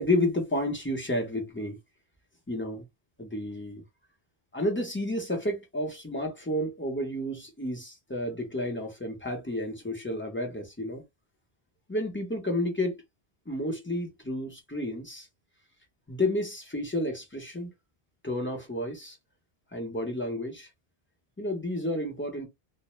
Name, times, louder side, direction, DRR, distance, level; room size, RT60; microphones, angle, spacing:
voice 1, 0.0-1.8 2.5-2.8 3.2-3.8 4.5-11.0 11.9-13.0 13.5-15.3 16.1-17.7 18.2-19.2 19.7-20.7 21.4-22.5, left 1 dB, 15° left, 0.6 m, -31 dB
2.0 x 2.0 x 3.0 m
omnidirectional pair, 1.0 m